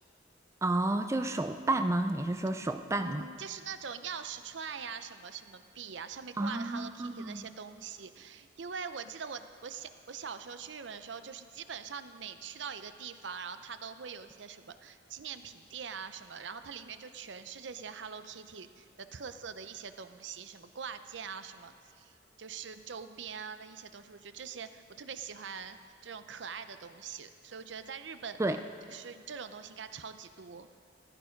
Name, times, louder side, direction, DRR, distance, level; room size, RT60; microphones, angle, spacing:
voice 1, 0.6-3.2 6.4-7.4 28.4-28.6, right 2 dB, 15° right, 7 dB, 0.4 m, -31 dB
voice 2, 3.0-28.4 28.9-30.7, right 6 dB, 70° right, 10 dB, 0.7 m, -43 dB
15.0 x 13.5 x 5.2 m, 2.3 s
head